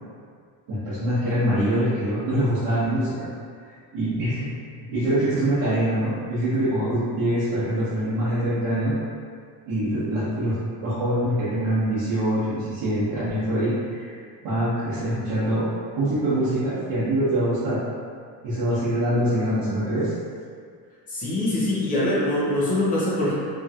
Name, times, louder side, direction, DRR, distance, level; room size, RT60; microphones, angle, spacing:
voice 1, 0.7-3.3 3.6-4.5 4.8-8.9 9.7-14.1 14.4-15.7 15.9-17.8 18.4-20.1, right 1 dB, 65° right, -13 dB, 0.9 m, -24 dB
voice 2, 21.1-23.3, left 1 dB, 20° left, -7 dB, 0.4 m, -23 dB
3.0 x 2.6 x 2.3 m, 2.1 s
cardioid pair, 180°, 42 cm